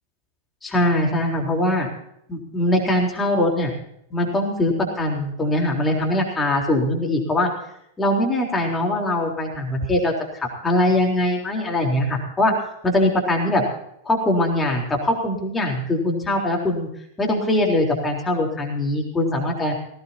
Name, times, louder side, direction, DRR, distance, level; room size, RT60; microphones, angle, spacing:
voice 1, 0.6-1.9 2.3-3.7 4.1-7.5 8.0-12.5 12.8-13.6 14.0-16.9 17.2-19.7, left 1 dB, 10° left, -1 dB, 3.9 m, -22 dB
18.5 x 17.5 x 2.9 m, 0.73 s
figure-of-eight pair, 95°, 0 cm